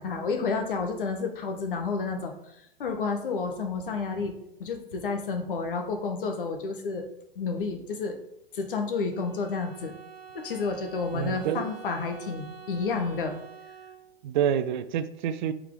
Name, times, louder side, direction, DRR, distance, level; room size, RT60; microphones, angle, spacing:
voice 1, 0.0-2.5 2.8-4.3 4.6-7.1 7.3-8.2 8.5-9.9 10.3-13.4, left 4 dB, 65° left, 5 dB, 1.4 m, -30 dB
Bowed string instrument, 9.1-14.4, right 7 dB, 85° right, 1.3 m, -47 dB
voice 2, 11.1-11.8 14.2-15.5, right 9 dB, 55° right, 12 dB, 0.6 m, -28 dB
8.6 x 4.8 x 3.8 m, 0.77 s
figure-of-eight pair, 105°, 29 cm